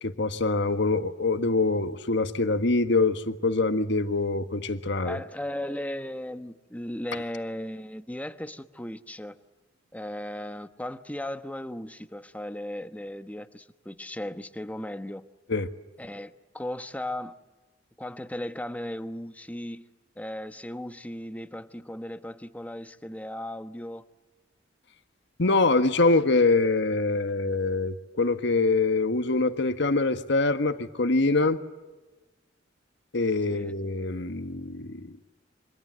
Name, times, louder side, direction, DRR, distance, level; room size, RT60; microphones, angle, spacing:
voice 1, 0.0-5.2 15.5-15.7 25.4-31.6 33.1-35.1, left 3 dB, 65° left, 1.6 m, -24 dB
voice 2, 5.0-9.4 9.9-15.3 16.0-17.4 18.0-19.9 20.2-24.0 33.5-33.7, left 1 dB, 10° left, 1.1 m, -36 dB
28.5 x 25.0 x 7.7 m
head